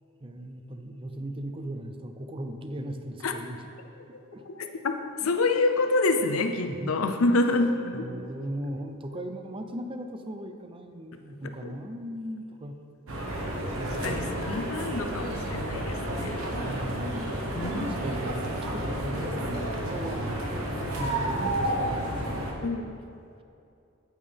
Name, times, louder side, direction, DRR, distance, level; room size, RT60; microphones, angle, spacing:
voice 1, 0.2-3.7 4.1-4.4 6.7-7.0 7.6-7.7 7.9-12.8 13.8-14.3 16.6-18.5 18.7-20.4 20.7-22.0 22.3-22.5 22.8-22.9, right 1 dB, 25° right, 7 dB, 0.5 m, -37 dB
voice 2, 4.5-8.0 11.6-11.8 14.0-16.4 17.6-17.9 22.6-22.9, left 2 dB, 85° left, 7 dB, 0.6 m, -27 dB
sound 1, 13.1-22.5, right 1 dB, 85° right, 1.2 m, -31 dB
8.9 x 8.6 x 3.5 m, 2.6 s
head